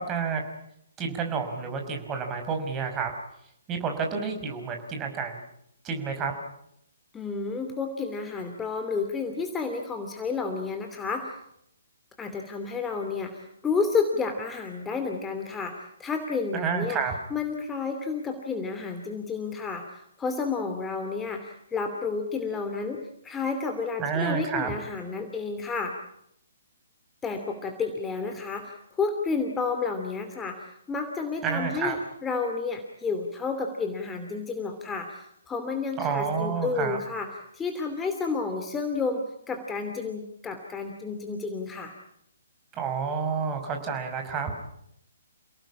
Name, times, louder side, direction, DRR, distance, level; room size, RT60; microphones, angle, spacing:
voice 1, 0.1-0.4 1.0-3.1 3.7-5.4 5.8-6.3 16.5-17.1 24.0-24.7 31.4-32.0 36.0-37.0 42.7-44.5, right 6 dB, 20° right, 4 dB, 5.6 m, -29 dB
voice 2, 7.1-11.3 12.2-17.0 17.3-23.0 23.2-25.9 27.2-32.0 32.2-37.3 37.5-41.9, left 4 dB, 10° left, 5 dB, 2.7 m, -31 dB
29.5 x 18.0 x 8.6 m, 0.74 s
figure-of-eight pair, 130°, 0 cm